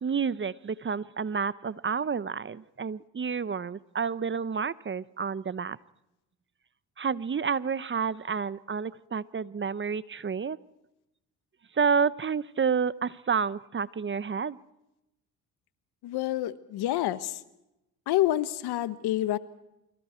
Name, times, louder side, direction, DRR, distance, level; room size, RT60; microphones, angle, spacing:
voice 1, 0.0-5.8 7.0-10.6 11.7-14.6, right 6 dB, 30° right, 18 dB, 0.8 m, -29 dB
voice 2, 16.0-17.4 18.1-19.4, left 14 dB, 75° left, 14 dB, 1.4 m, -28 dB
29.5 x 25.0 x 4.5 m, 0.91 s
supercardioid pair, 65°, 39 cm